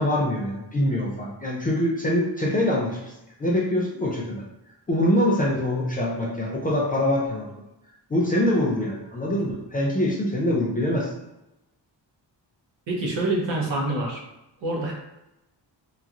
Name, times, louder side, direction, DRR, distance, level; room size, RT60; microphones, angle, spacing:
voice 1, 0.0-3.1 3.4-4.4 4.9-7.5 8.1-11.1, left 1 dB, 20° left, -4 dB, 0.3 m, -24 dB
voice 2, 12.9-14.2 14.6-14.9, right 2 dB, 70° right, -2 dB, 0.9 m, -26 dB
2.9 x 2.3 x 2.4 m, 0.92 s
wide cardioid pair, 145°, 45 cm